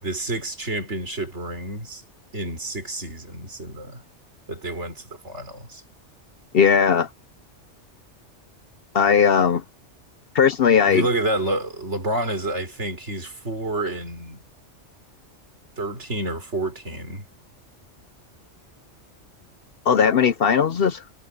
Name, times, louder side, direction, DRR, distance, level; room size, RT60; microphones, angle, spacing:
voice 1, 0.0-2.0 2.3-4.0 4.5-5.8 10.9-14.4 15.8-17.2, right 2 dB, 65° right, 5.0 m, -29 dB
voice 2, 6.5-7.1 8.9-9.6 10.3-11.1 19.9-21.0, left 7 dB, 55° left, 0.8 m, -18 dB
omnidirectional pair, 1.3 m